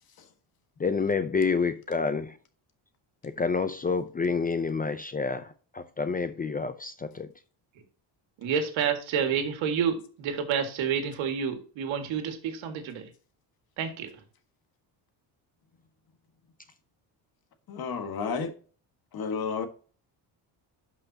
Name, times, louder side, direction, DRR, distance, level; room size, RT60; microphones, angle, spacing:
voice 1, 0.8-2.3 3.2-5.5 5.7-7.3, left 4 dB, 20° left, 0.5 m, -28 dB
voice 2, 8.4-13.1 13.8-14.2, right 7 dB, 85° right, 1.9 m, -29 dB
voice 3, 17.7-18.5 19.1-19.7, left 5 dB, 50° left, 1.6 m, -31 dB
12.0 x 5.6 x 2.8 m
cardioid pair, 135°, 45 cm